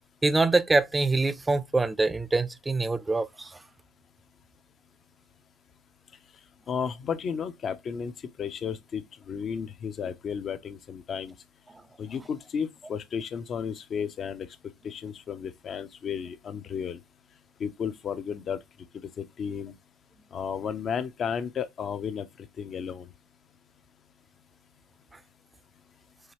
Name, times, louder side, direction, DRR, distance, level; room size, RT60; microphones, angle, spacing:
voice 1, 0.2-3.6, right 3 dB, 15° right, 0.5 m, -25 dB
voice 2, 6.7-8.1 8.4-11.3 12.0-14.5 14.8-17.0 17.6-18.6 18.9-19.7 20.3-23.1, left 7 dB, 40° left, 0.6 m, -33 dB
4.7 x 2.7 x 2.9 m
supercardioid pair, 95°, 0 cm